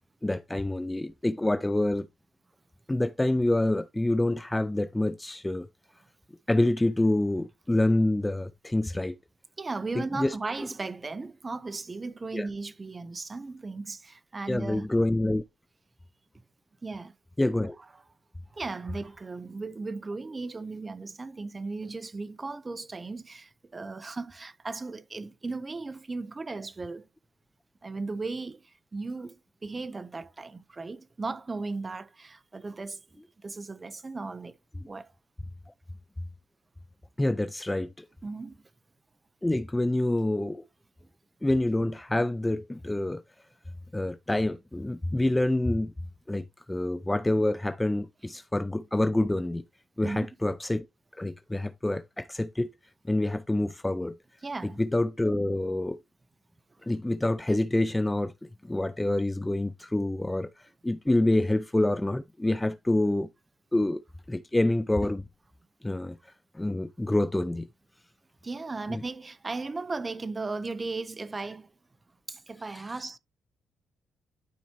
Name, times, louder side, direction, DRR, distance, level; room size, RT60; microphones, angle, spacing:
voice 1, 0.2-2.1 2.9-5.7 6.5-9.1 10.0-10.4 12.3-12.5 14.5-15.4 17.4-17.8 37.2-38.1 39.4-40.6 41.4-43.2 43.9-45.9 46.3-49.6 50.0-50.8 51.1-52.7 53.1-54.1 54.8-56.0 56.8-58.3 58.6-60.5 60.8-63.3 63.7-64.0 64.3-65.2 65.8-66.2 66.5-67.7 68.9-69.0, left 1 dB, 10° left, 0.4 m, -27 dB
voice 2, 9.6-14.9 16.8-17.1 18.5-27.0 27.8-34.6 34.9-35.1 38.2-38.6 50.0-50.3 54.4-54.8 68.4-71.7 72.3-73.2, right 3 dB, 25° right, 0.8 m, -36 dB
12.0 x 4.3 x 2.9 m
cardioid pair, 90°, 0 cm